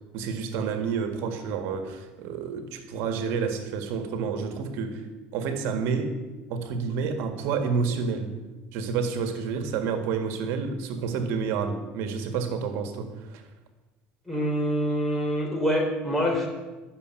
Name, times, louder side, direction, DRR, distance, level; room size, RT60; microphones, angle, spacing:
voice 1, 0.1-5.0 5.3-6.1 6.5-8.3 8.7-13.4, right 5 dB, 75° right, 7 dB, 1.8 m, -29 dB
voice 2, 14.3-16.5, equal, 5° left, -1 dB, 3.8 m, -25 dB
11.5 x 7.0 x 9.0 m, 1.2 s
cardioid pair, 120°, 4 cm